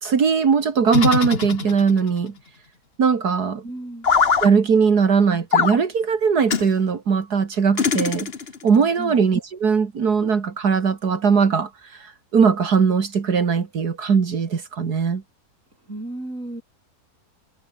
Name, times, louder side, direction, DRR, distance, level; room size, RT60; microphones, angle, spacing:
voice 1, 0.0-2.3 3.0-3.6 4.4-8.3 8.6-15.2, right 6 dB, 70° right, 2.5 m, -20 dB
sound 1, 0.9-2.1 4.0-4.5 5.5-5.8 6.5-6.7 7.8-8.6, left 5 dB, 40° left, 1.5 m, -21 dB
voice 2, 3.6-4.1 9.0-9.2 15.8-16.6, right 1 dB, 50° right, 8.0 m, -33 dB
omnidirectional pair, 1.7 m